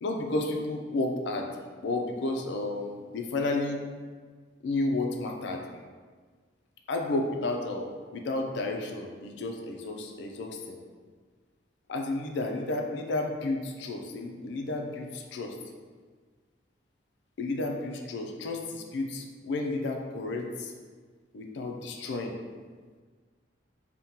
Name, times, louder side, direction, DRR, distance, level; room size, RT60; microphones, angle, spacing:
voice 1, 0.0-1.5 1.8-3.8 4.6-5.6 6.9-10.8 11.9-15.6 17.4-20.7 21.3-22.3, left 2 dB, 65° left, 2 dB, 0.4 m, -32 dB
2.7 x 2.2 x 3.5 m, 1.5 s
head